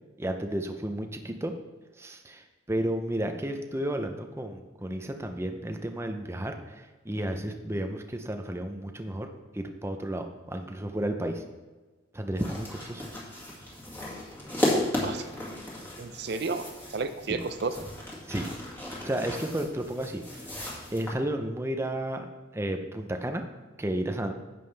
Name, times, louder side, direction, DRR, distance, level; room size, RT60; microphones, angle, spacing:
voice 1, 0.2-1.6 2.0-9.3 9.5-11.4 12.1-13.1 17.3-17.4 18.3-18.5 19.0-20.5 20.9-22.3 22.5-23.4 23.8-24.3, right 1 dB, 15° right, 5 dB, 0.6 m, -32 dB
sound 1, 12.4-21.1, left 1 dB, 10° left, 2.0 m, -34 dB
voice 2, 16.0-17.9, right 4 dB, 55° right, 9 dB, 0.5 m, -32 dB
10.5 x 7.6 x 3.4 m, 1.3 s
head